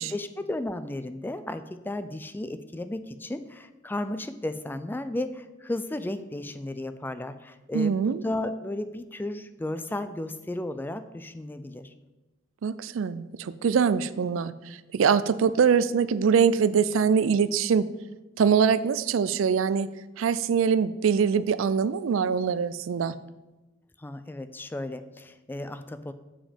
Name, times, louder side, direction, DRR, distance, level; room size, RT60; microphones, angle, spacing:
voice 1, 0.0-11.9 24.0-26.1, left 1 dB, 10° left, 11 dB, 0.3 m, -34 dB
voice 2, 7.7-8.2 12.6-17.9 18.4-19.9 20.2-23.1, right 6 dB, 80° right, 15 dB, 0.4 m, -23 dB
7.4 x 5.1 x 5.0 m, 1.1 s
head